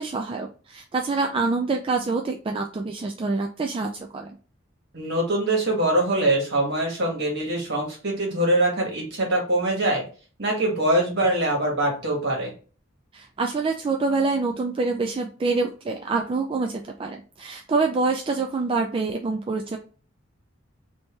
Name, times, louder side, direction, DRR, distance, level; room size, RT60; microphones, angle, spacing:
voice 1, 0.0-4.4 13.1-19.8, right 3 dB, 25° right, 3 dB, 0.3 m, -26 dB
voice 2, 4.9-10.0 10.4-12.5, right 1 dB, 60° right, -1 dB, 1.5 m, -23 dB
3.5 x 2.7 x 3.0 m, 0.37 s
head